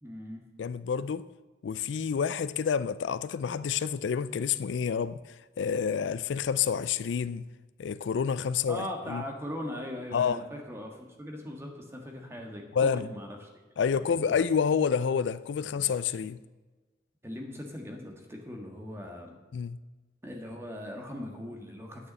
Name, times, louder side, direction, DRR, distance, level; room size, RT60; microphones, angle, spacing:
voice 1, 0.0-0.4 8.7-13.5 13.9-14.4 17.2-19.3 20.2-22.1, left 1 dB, 15° right, 1.6 m, -40 dB
voice 2, 0.6-1.2 1.6-7.4 7.8-9.2 10.1-10.4 12.7-13.1 13.8-16.4 19.5-19.8, left 6 dB, 85° left, 0.4 m, -28 dB
9.2 x 6.8 x 8.7 m
head